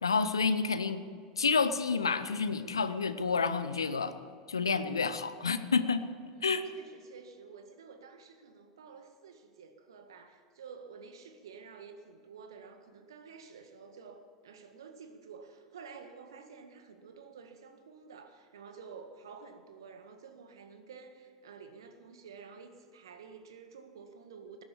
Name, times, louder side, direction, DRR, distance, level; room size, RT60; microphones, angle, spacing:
voice 1, 0.0-1.0 1.4-4.1 4.5-6.0 6.4-6.6, left 5 dB, 80° left, 12 dB, 0.9 m, -29 dB
voice 2, 6.3-24.6, right 5 dB, 70° right, 7 dB, 1.8 m, -51 dB
19.5 x 10.5 x 7.1 m, 2.3 s
figure-of-eight pair, 85°, 2 cm